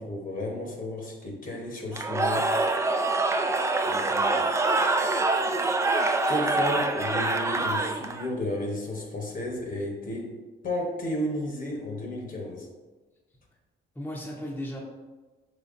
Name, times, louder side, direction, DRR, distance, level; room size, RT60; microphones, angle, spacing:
voice 1, 0.0-2.5 6.3-10.4 10.6-12.7, left 1 dB, 45° left, 1 dB, 1.0 m, -32 dB
Cheering / Crowd, 1.9-8.3, right 2 dB, 15° right, 0.3 m, -25 dB
voice 2, 3.9-4.5 14.0-14.8, left 1 dB, 10° left, -2 dB, 0.7 m, -37 dB
5.2 x 3.2 x 2.5 m, 1.2 s
cardioid pair, 90°, 20 cm